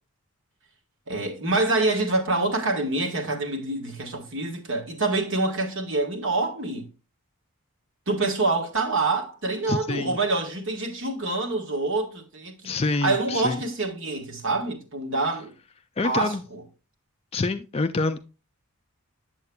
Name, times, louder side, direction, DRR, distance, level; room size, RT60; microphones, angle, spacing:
voice 1, 1.1-6.9 8.1-12.7 13.0-15.5 16.0-16.6, right 2 dB, 55° right, 1.5 m, -26 dB
voice 2, 9.7-10.2 12.6-13.6 16.0-16.4 17.3-18.2, left 3 dB, 25° left, 0.4 m, -26 dB
8.1 x 7.6 x 2.2 m
head